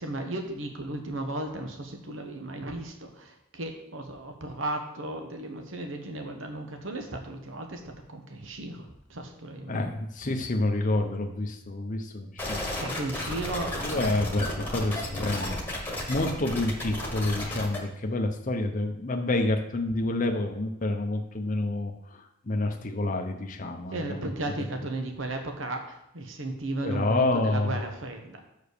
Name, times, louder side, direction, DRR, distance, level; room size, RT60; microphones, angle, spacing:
voice 1, 0.0-9.8 12.7-14.1 23.9-28.4, right 2 dB, 65° right, 4 dB, 1.1 m, -35 dB
voice 2, 9.7-12.7 13.8-24.5 26.8-27.8, left 2 dB, 40° left, 3 dB, 0.8 m, -28 dB
sound 1, 12.4-17.8, left 1 dB, 10° left, 1.5 m, -33 dB
6.3 x 5.0 x 6.7 m, 0.83 s
head